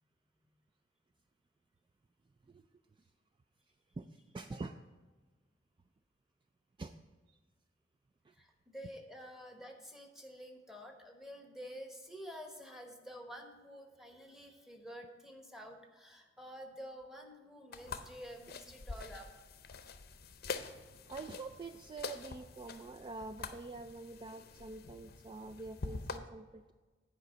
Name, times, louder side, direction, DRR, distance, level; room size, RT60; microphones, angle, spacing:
voice 1, 4.3-4.7 6.8-6.9 21.0-26.7, right 3 dB, 25° right, 8 dB, 0.3 m, -45 dB
voice 2, 8.3-19.3, equal, 5° right, 3 dB, 1.1 m, -49 dB
sound 1, 17.7-26.2, left 4 dB, 55° left, 0.6 m, -46 dB
9.4 x 5.0 x 7.1 m, 1.3 s
head